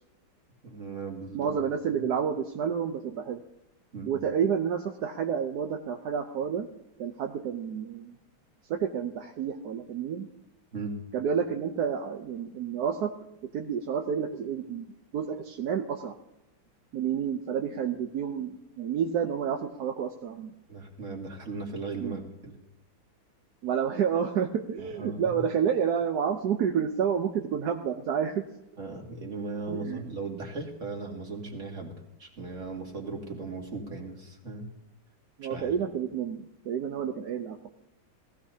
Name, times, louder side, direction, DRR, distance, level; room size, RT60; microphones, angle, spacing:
voice 1, 0.6-1.5 3.9-4.1 10.7-11.0 20.7-22.5 24.8-25.4 28.8-31.9 32.2-34.7 35.4-35.7, right 3 dB, 35° right, 0 dB, 2.5 m, -37 dB
voice 2, 1.3-3.4 4.0-6.7 7.0-8.1 8.7-10.3 11.1-13.1 13.5-14.9 15.1-16.1 16.9-20.5 22.0-22.2 23.6-28.4 29.7-30.1 35.4-37.7, right 7 dB, 65° right, 4 dB, 1.1 m, -29 dB
19.0 x 15.5 x 2.8 m, 0.90 s
omnidirectional pair, 2.3 m